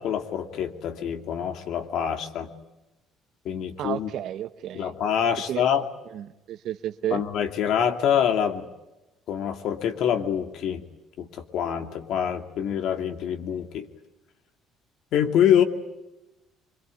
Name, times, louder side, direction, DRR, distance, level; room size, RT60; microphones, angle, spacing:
voice 1, 0.0-2.5 3.4-4.1 4.7-5.8 7.1-8.7 9.3-10.8 11.2-13.9 15.1-15.6, left 9 dB, 65° left, 6 dB, 2.6 m, -25 dB
voice 2, 3.8-4.9 5.5-5.6 6.1-7.2, right 11 dB, 65° right, 9 dB, 1.1 m, -32 dB
25.0 x 23.0 x 9.7 m, 0.99 s
cardioid pair, 110°, 0 cm